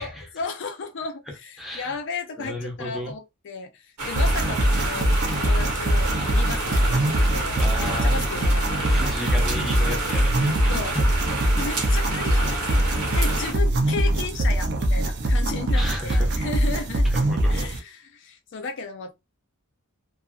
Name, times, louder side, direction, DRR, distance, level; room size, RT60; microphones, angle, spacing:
voice 1, 0.0-9.2 10.7-11.0 11.5-12.8 13.1-19.1, left 4 dB, 55° left, 0.4 m, -35 dB
voice 2, 1.6-2.0 2.4-3.1 7.6-8.2 8.8-11.0 15.7-16.4 17.0-17.6, left 1 dB, ahead, 0.8 m, -34 dB
sound 1, 4.0-13.5, right 2 dB, 80° right, 0.9 m, -29 dB
sound 2, 4.2-17.8, right 1 dB, 50° right, 0.5 m, -22 dB
2.6 x 2.5 x 2.3 m
head